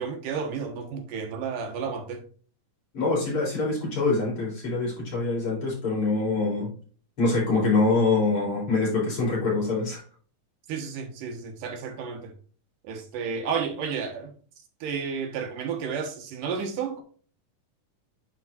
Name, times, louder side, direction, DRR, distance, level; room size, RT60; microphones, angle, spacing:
voice 1, 0.0-2.2 10.7-12.3 12.8-14.3 14.8-17.0, right 6 dB, 85° right, 2.9 m, -32 dB
voice 2, 2.9-6.7 7.2-10.0, left 3 dB, 40° left, 4.2 m, -24 dB
9.9 x 4.6 x 2.5 m
omnidirectional pair, 3.7 m